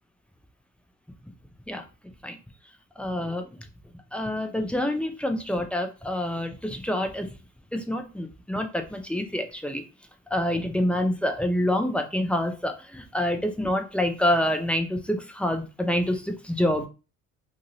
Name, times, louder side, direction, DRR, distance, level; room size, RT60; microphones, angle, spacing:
voice 1, 3.0-3.5 4.1-7.3 7.7-9.8 10.3-16.9, left 1 dB, 5° left, 4 dB, 0.5 m, -27 dB
2.7 x 2.5 x 2.8 m, 0.31 s
hypercardioid pair, 65°, 41 cm